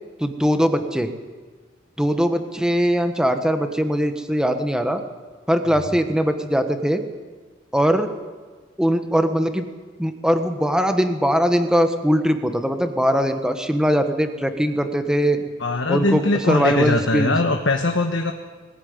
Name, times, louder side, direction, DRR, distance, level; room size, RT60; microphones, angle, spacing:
voice 1, 0.2-1.1 2.0-5.0 5.5-7.0 7.7-8.1 8.8-9.6 10.0-15.4 15.9-17.3, equal, 5° right, 7 dB, 1.3 m, -21 dB
voice 2, 15.6-18.3, left 2 dB, 65° left, 3 dB, 1.3 m, -21 dB
21.0 x 15.0 x 9.5 m, 1.4 s
head